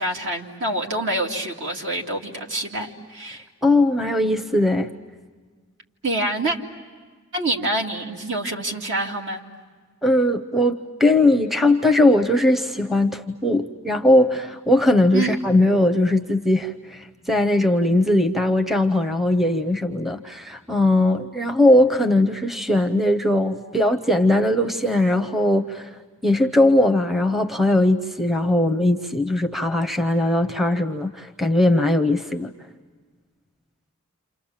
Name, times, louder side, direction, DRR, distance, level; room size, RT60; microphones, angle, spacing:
voice 1, 0.0-3.4 6.0-6.6 7.3-9.4 15.1-15.4, right 2 dB, 60° right, 1 dB, 2.6 m, -26 dB
voice 2, 3.6-4.9 10.0-25.9 26.2-32.5, left 1 dB, ahead, 4 dB, 0.8 m, -19 dB
29.0 x 28.5 x 7.3 m, 1.5 s
head